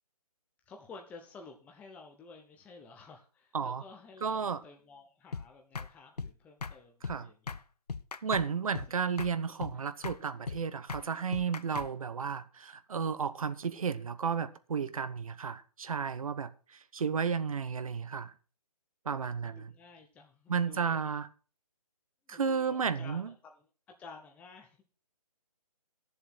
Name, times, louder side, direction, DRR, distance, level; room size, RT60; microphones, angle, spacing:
voice 1, 0.7-7.4 8.6-8.8 9.7-9.9 19.4-21.0 22.3-23.6 24.0-24.8, left 4 dB, 5° left, 0.9 m, -52 dB
voice 2, 4.2-4.6 7.0-7.3 8.2-18.3 19.0-19.7 20.5-21.3 22.3-23.3, right 6 dB, 60° right, 1.1 m, -33 dB
sound 1, 5.3-5.5 5.8-5.9 6.2-6.3 6.6-6.8 7.0-7.2 7.5-7.6 7.9-8.5 8.7-8.9 9.2-9.3 9.6-9.8 10.0-10.2 10.5-10.6 10.9-11.1 11.3-11.9, left 5 dB, 80° left, 0.9 m, -38 dB
11.0 x 7.2 x 6.1 m
figure-of-eight pair, 150°, 20 cm